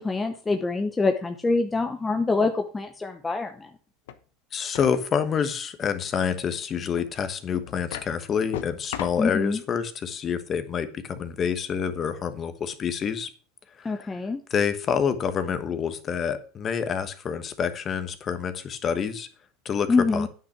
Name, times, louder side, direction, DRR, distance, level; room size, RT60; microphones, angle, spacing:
voice 1, 0.0-3.7 9.2-9.6 13.8-14.4 19.9-20.3, left 3 dB, 15° left, 5 dB, 0.9 m, -25 dB
sound 1, 4.1-4.2 4.7-5.1 7.0-7.1 7.7-8.1 8.5-9.3, left 11 dB, 85° left, 1.0 m, -36 dB
voice 2, 4.5-13.3 13.8-14.1 14.5-19.3 19.6-20.3, left 7 dB, 30° left, 11 dB, 1.2 m, -27 dB
9.5 x 6.0 x 5.9 m, 0.38 s
supercardioid pair, 130°, 0 cm